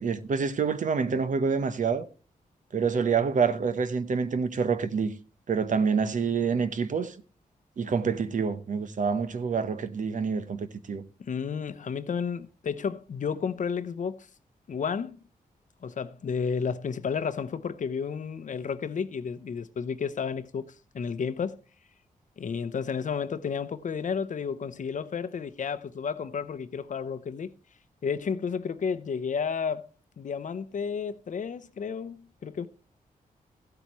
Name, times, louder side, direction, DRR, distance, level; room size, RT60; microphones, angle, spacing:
voice 1, 0.0-2.1 2.7-5.1 5.5-7.1 7.8-11.0, right 5 dB, 60° right, 0.9 m, -27 dB
voice 2, 11.2-14.3 14.7-15.2 15.8-21.6 22.4-27.5 28.0-29.9 30.2-32.7, left 6 dB, 60° left, 0.7 m, -32 dB
15.0 x 8.2 x 3.0 m
wide cardioid pair, 100°, 15 cm